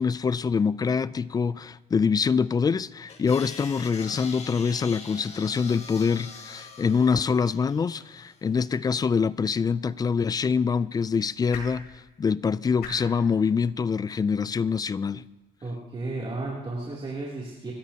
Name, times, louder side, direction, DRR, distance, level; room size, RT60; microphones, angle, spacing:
voice 1, 0.0-11.9 12.2-15.2, left 5 dB, 20° left, 0.3 m, -25 dB
sound 1, 3.1-8.4, left 4 dB, 40° left, 1.8 m, -43 dB
sound 2, 9.7-15.9, left 4 dB, 70° left, 3.9 m, -48 dB
voice 2, 15.6-17.7, right 2 dB, 30° right, 3.0 m, -33 dB
27.0 x 13.0 x 2.9 m
cardioid pair, 110°, 17 cm